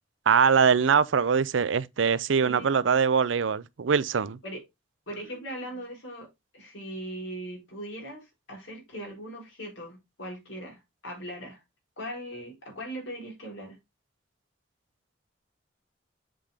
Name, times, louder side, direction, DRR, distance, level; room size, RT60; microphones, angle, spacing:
voice 1, 0.3-4.4, right 6 dB, 85° right, 0.5 m, -23 dB
voice 2, 2.4-2.7 4.4-4.6 5.1-6.3 6.5-11.6 12.0-13.8, equal, 90° left, 4.1 m, -39 dB
7.6 x 5.0 x 3.5 m
head